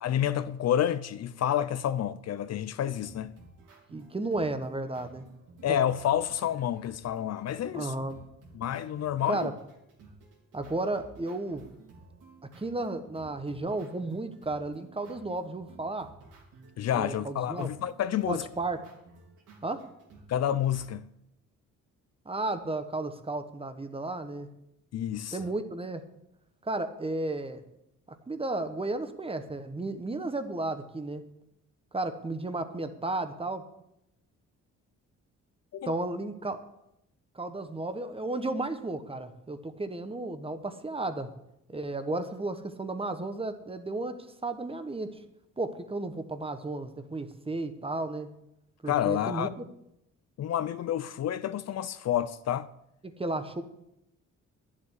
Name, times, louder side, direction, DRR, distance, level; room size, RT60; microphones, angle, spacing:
voice 1, 0.0-3.4 5.6-7.9 8.5-9.5 16.8-18.4 20.3-21.0 24.9-25.4 35.7-36.0 48.9-49.5 50.4-52.7, left 10 dB, 60° left, 0.6 m, -29 dB
sound 1, 3.0-20.9, right 3 dB, 85° right, 3.8 m, -54 dB
voice 2, 3.9-5.3 7.7-8.2 9.3-9.6 10.5-11.6 12.6-16.1 16.9-17.7 18.3-18.9 19.6-19.9 22.2-24.5 25.3-26.0 26.6-27.6 28.1-31.2 31.9-33.7 35.9-36.6 37.3-41.3 41.7-45.2 45.6-48.3 48.8-49.7 53.0-53.6, right 2 dB, 20° right, 1.2 m, -33 dB
11.0 x 7.6 x 8.1 m
cardioid pair, 90°, 30 cm